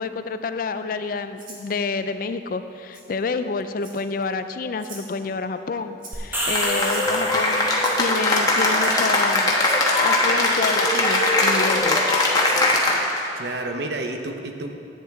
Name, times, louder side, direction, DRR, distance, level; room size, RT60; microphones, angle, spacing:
voice 1, 0.0-7.7 8.0-9.5 10.0-12.0, left 4 dB, 50° left, 10 dB, 0.4 m, -28 dB
Rattle (instrument), 1.4-1.7 2.9-3.0 3.8-4.2 4.8-5.1 6.0-6.3 6.9-7.3 7.8-8.0 8.8-8.9 9.6-9.8 10.7-10.8 11.6-11.7 12.4-12.6, right 3 dB, 50° right, 1.6 m, -42 dB
sound 1, 6.1-8.1, equal, 10° right, 1.0 m, -28 dB
Cheering / Applause, 6.6-13.3, left 2 dB, 20° left, 1.0 m, -20 dB
voice 2, 6.9-7.5 13.3-14.8, right 2 dB, 65° right, 5 dB, 0.7 m, -31 dB
11.0 x 9.0 x 3.5 m, 2.6 s
head